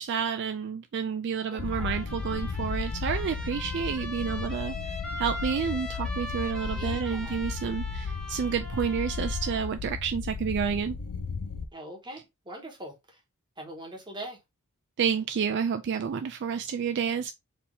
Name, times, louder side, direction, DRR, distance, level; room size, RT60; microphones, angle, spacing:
voice 1, 0.0-11.0 15.0-17.3, right 7 dB, 50° right, 0.3 m, -30 dB
voice 2, 1.5-2.0 6.7-7.5 11.7-13.2 13.6-14.4, right 1 dB, 20° right, 1.3 m, -42 dB
sound 1, 1.6-11.7, left 4 dB, 80° left, 0.6 m, -34 dB
Trumpet, 1.6-9.7, left 1 dB, 5° left, 1.1 m, -41 dB
4.3 x 2.8 x 3.3 m
head